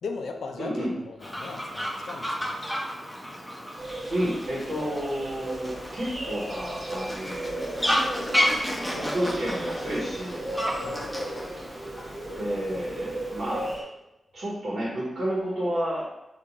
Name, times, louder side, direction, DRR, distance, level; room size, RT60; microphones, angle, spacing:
voice 1, 0.0-2.6 10.8-11.1, left 4 dB, 90° left, 4 dB, 0.3 m, -38 dB
voice 2, 0.6-0.9 4.1-7.8 8.9-10.4 12.3-13.7 14.3-16.0, equal, 85° right, -8 dB, 1.0 m, -30 dB
Fowl, 1.2-13.8, equal, 10° left, 0.7 m, -32 dB
sound 1, 3.8-13.8, right 1 dB, 50° right, 1.3 m, -36 dB
3.6 x 2.4 x 2.9 m, 0.96 s
cardioid pair, 55°, 0 cm